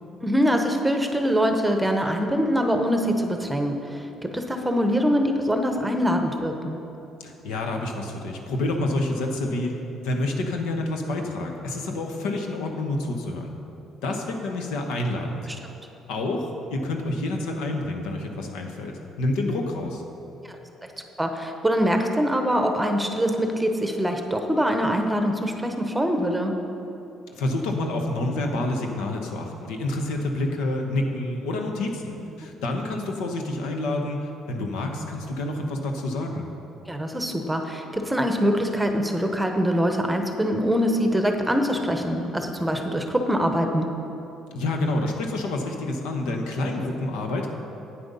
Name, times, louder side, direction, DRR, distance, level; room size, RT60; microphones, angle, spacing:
voice 1, 0.2-6.8 21.2-26.6 36.9-43.9, equal, 5° right, 4 dB, 0.9 m, -24 dB
voice 2, 7.2-9.8 10.0-13.5 14.0-15.5 16.1-20.0 27.4-36.5 44.5-47.5, left 2 dB, 90° left, 2 dB, 1.0 m, -28 dB
8.8 x 7.8 x 5.4 m, 2.9 s
cardioid pair, 100°, 0 cm